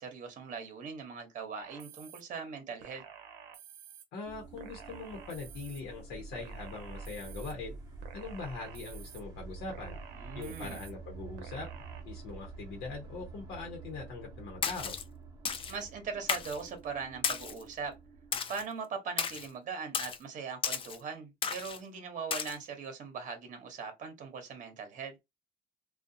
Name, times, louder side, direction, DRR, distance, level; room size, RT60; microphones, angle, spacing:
voice 1, 0.0-3.0 10.1-10.8 15.7-18.0 18.5-25.2, right 5 dB, 50° right, 0.9 m, -40 dB
sound 1, 1.6-2.2 2.8-4.0 4.6-5.8 6.3-7.5 8.0-9.2 9.7-10.9 11.4-12.0, right 8 dB, 90° right, 0.6 m, -51 dB
voice 2, 4.1-7.7 8.1-10.0 10.3-11.7 12.0-15.0, left 3 dB, 80° left, 0.9 m, -42 dB
sound 2, 4.2-18.4, right 4 dB, 25° right, 0.8 m, -48 dB
Splash splatter, 14.6-15.0 15.4-15.8 16.3-16.6 17.2-17.6 18.3-18.6 19.2-19.5 19.9-20.2 20.6-21.0 21.4-21.8 22.3-22.5, left 6 dB, 30° left, 0.4 m, -33 dB
2.4 x 2.3 x 2.7 m
cardioid pair, 110°, 17 cm